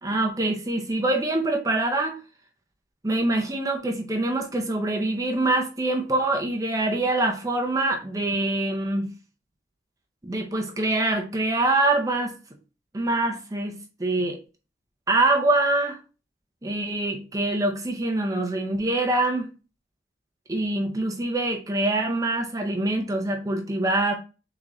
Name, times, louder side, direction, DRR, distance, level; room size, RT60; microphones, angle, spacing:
voice 1, 0.0-2.2 3.0-9.1 10.2-12.3 12.9-14.4 15.1-16.0 16.6-19.5 20.5-24.1, right 2 dB, 20° right, 0.5 m, -24 dB
3.9 x 3.7 x 3.0 m
head